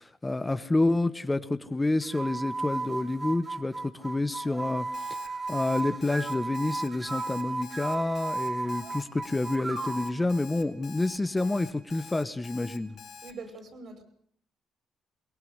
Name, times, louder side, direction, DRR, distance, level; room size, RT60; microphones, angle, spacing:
voice 1, 0.0-5.2 5.5-13.0, left 2 dB, 15° left, 12 dB, 1.2 m, -29 dB
sound 1, 2.0-10.2, right 3 dB, 25° right, 2.7 m, -35 dB
Alarm, 4.9-13.3, left 6 dB, 60° left, 4.7 m, -47 dB
voice 2, 13.2-14.0, right 4 dB, 60° right, 9 dB, 5.7 m, -43 dB
22.5 x 18.5 x 8.1 m, 0.63 s
cardioid pair, 90°, 0 cm